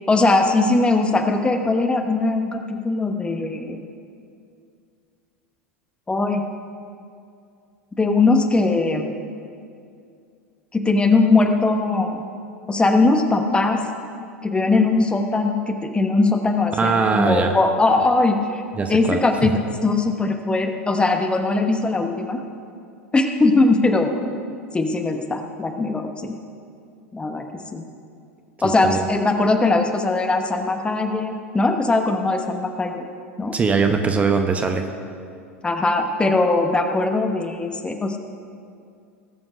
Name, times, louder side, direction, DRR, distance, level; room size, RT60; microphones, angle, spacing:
voice 1, 0.1-3.8 6.1-6.4 8.0-9.1 10.7-12.2 12.7-13.8 14.4-18.6 18.9-22.4 23.1-24.1 24.7-26.4 27.1-27.5 27.7-27.8 28.6-33.1 33.4-33.6 35.6-38.2, left 3 dB, 15° left, 5 dB, 1.1 m, -20 dB
voice 2, 16.7-17.5 18.8-19.5 28.6-29.1 33.5-34.8, right 4 dB, 20° right, 5 dB, 0.8 m, -21 dB
18.5 x 7.7 x 5.0 m, 2.4 s
figure-of-eight pair, 85°, 7 cm